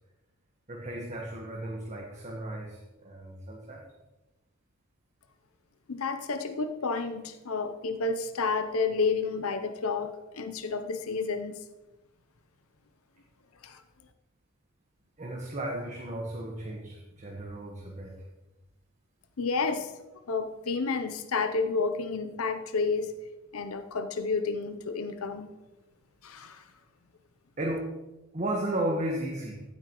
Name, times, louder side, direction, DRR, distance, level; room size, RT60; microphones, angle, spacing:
voice 1, 0.7-3.8 15.2-18.2 27.6-27.9 28.3-29.6, right 1 dB, 35° right, 1.3 m, -34 dB
voice 2, 5.9-11.6 13.6-13.8 19.4-20.0 20.3-23.1 23.5-25.5 26.2-26.6, left 4 dB, 70° left, 0.7 m, -30 dB
15.0 x 8.7 x 3.0 m
head